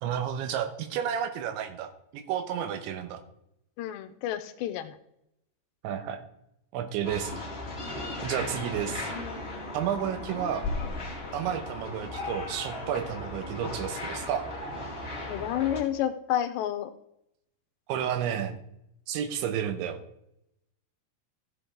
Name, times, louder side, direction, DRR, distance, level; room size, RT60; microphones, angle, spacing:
voice 1, 0.0-3.2 5.8-6.2 6.7-7.4 8.2-9.1 9.7-10.7 11.3-14.5 17.9-18.6 19.1-20.0, right 9 dB, 85° right, 8 dB, 3.4 m, -31 dB
voice 2, 3.8-5.0 11.9-12.1 15.3-16.9, left 11 dB, 80° left, 10 dB, 2.8 m, -30 dB
sound 1, 7.0-15.8, left 2 dB, 35° left, 0.9 m, -36 dB
14.5 x 7.7 x 3.8 m, 0.78 s
omnidirectional pair, 5.2 m